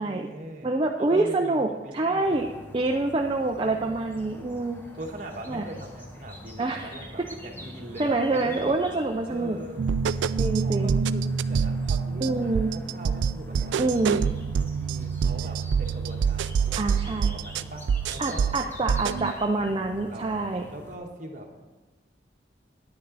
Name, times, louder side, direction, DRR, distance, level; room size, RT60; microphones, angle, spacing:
voice 1, 0.0-2.5 3.6-4.5 5.0-8.8 9.3-9.9 10.6-14.2 14.6-18.6 20.1-20.3 20.7-21.7, right 1 dB, 45° right, 2 dB, 1.4 m, -41 dB
voice 2, 0.6-1.7 1.9-2.5 2.7-4.8 5.5-5.6 6.6-6.9 8.0-9.6 10.4-11.0 12.2-12.7 13.8-14.2 16.8-17.3 18.2-20.6, right 2 dB, 30° right, 2 dB, 0.5 m, -26 dB
sound 1, 2.2-21.0, equal, 10° left, 1.1 m, -46 dB
sound 2, 9.8-19.3, right 6 dB, 85° right, 0.3 m, -26 dB
9.8 x 9.7 x 4.1 m, 1.2 s
head